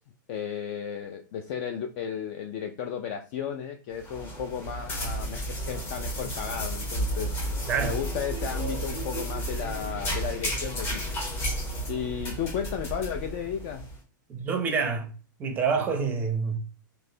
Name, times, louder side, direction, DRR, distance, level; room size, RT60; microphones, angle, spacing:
voice 1, 0.3-7.3 7.8-11.0 11.9-13.8, left 8 dB, 40° left, 0.3 m, -34 dB
sound 1, 3.9-13.9, right 1 dB, 20° left, 0.7 m, -32 dB
voice 2, 7.7-8.0 14.3-15.1 15.4-16.6, right 5 dB, 15° right, 0.5 m, -27 dB
3.1 x 2.5 x 2.7 m
supercardioid pair, 155°, 11 cm